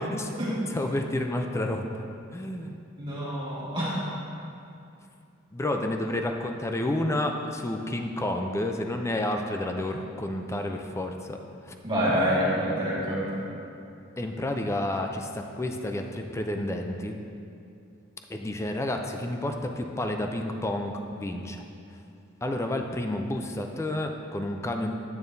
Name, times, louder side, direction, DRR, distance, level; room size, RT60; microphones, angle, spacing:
voice 1, 0.7-2.0 2.3-2.8 5.5-11.4 11.7-11.8 14.2-17.2 18.3-21.6 22.4-24.9, left 1 dB, 15° left, 4 dB, 0.4 m, -30 dB
voice 2, 3.0-3.9 11.8-13.4, equal, 25° right, -9 dB, 1.9 m, -27 dB
9.1 x 8.6 x 2.7 m, 2.6 s
head